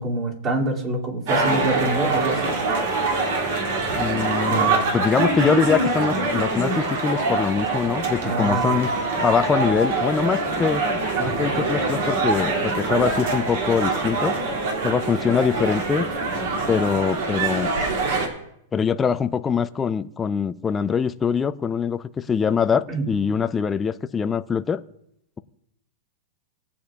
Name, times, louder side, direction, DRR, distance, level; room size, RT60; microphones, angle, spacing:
voice 1, 0.0-2.5 4.5-5.0 8.2-8.9 22.9-23.1, right 2 dB, 30° right, 2.5 m, -26 dB
sound 1, 1.3-18.3, right 3 dB, 65° right, 2.4 m, -24 dB
voice 2, 3.9-8.9 9.2-10.8 11.2-14.4 14.8-16.1 16.7-17.7 18.7-24.8, left 6 dB, 15° left, 0.4 m, -23 dB
20.0 x 8.5 x 2.3 m
hypercardioid pair, 140°, 0 cm